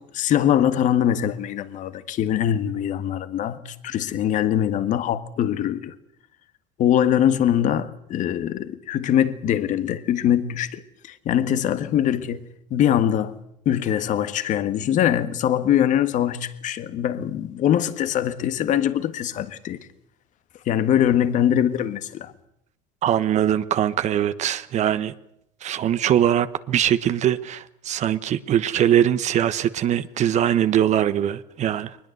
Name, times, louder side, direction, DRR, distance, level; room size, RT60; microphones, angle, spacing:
voice 1, 0.0-5.9 6.8-10.8 11.2-12.4 12.7-13.4 13.6-19.8 20.7-22.3, left 10 dB, 55° left, 1.6 m, -22 dB
voice 2, 23.0-25.1 25.6-32.0, right 10 dB, 50° right, 1.2 m, -22 dB
22.0 x 20.5 x 8.0 m
supercardioid pair, 90°, 15 cm